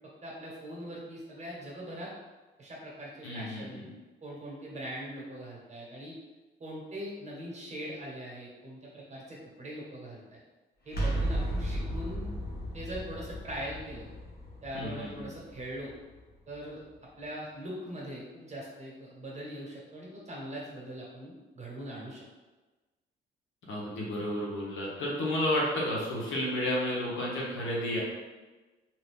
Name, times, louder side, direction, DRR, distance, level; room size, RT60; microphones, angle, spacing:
voice 1, 0.2-2.1 2.6-3.8 4.2-6.1 6.6-10.4 10.8-12.3 12.7-14.1 14.6-15.9 16.5-16.8 17.2-22.2, right 1 dB, 35° right, -4 dB, 1.1 m, -41 dB
voice 2, 3.2-3.9 14.7-15.3 23.7-28.0, left 1 dB, 75° left, -4 dB, 1.0 m, -31 dB
sound 1, 10.9-16.6, right 1 dB, 50° left, 0.9 m, -35 dB
2.7 x 2.5 x 3.5 m, 1.2 s
cardioid pair, 90°, 20 cm